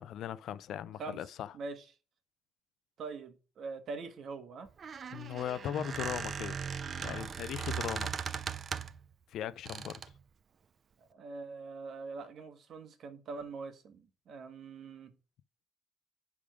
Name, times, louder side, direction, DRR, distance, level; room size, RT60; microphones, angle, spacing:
voice 1, 0.0-1.5 5.1-6.6 7.0-8.1 9.3-10.0, left 10 dB, 75° left, 0.5 m, -38 dB
voice 2, 1.5-1.8 3.0-4.7 11.1-15.1, right 4 dB, 65° right, 1.4 m, -43 dB
Squeak, 4.7-9.0 9.7-10.2, right 6 dB, 50° right, 0.6 m, -38 dB
10.0 x 3.6 x 5.0 m
cardioid pair, 90°, 0 cm